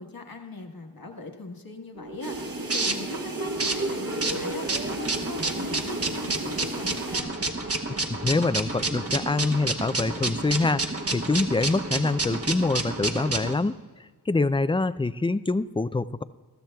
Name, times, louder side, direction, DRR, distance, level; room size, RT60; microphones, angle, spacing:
voice 1, 0.0-7.3, left 3 dB, 60° left, 3 dB, 1.4 m, -40 dB
sound 1, 2.0-13.5, right 2 dB, 35° right, 1.0 m, -30 dB
sound 2, 2.2-7.2, right 2 dB, 60° right, 1.4 m, -35 dB
voice 2, 7.9-16.2, left 3 dB, 15° left, 14 dB, 0.3 m, -25 dB
20.5 x 13.5 x 2.3 m, 1.4 s
wide cardioid pair, 40°, 40 cm